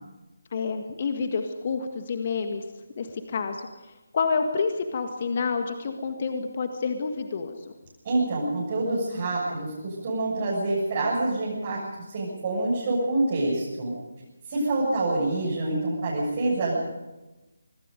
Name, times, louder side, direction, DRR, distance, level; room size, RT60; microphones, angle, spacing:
voice 1, 0.5-2.6 3.0-3.7 4.1-7.6, left 5 dB, 35° left, 6 dB, 1.8 m, -28 dB
voice 2, 8.0-11.8 12.1-13.9 14.5-16.7, right 2 dB, 30° right, -6 dB, 7.3 m, -26 dB
26.0 x 21.0 x 5.2 m, 1.1 s
figure-of-eight pair, 150°, 0 cm